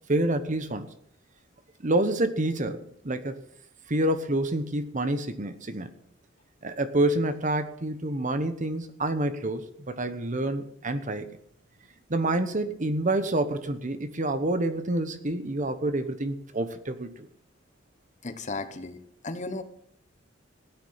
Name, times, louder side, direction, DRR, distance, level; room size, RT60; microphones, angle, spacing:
voice 1, 0.1-0.9 1.8-3.4 3.9-5.9 6.6-11.4 12.1-17.3, right 1 dB, 40° right, 10 dB, 1.1 m, -28 dB
voice 2, 18.2-19.6, left 3 dB, 40° left, 9 dB, 1.1 m, -35 dB
16.0 x 9.5 x 5.7 m, 0.69 s
head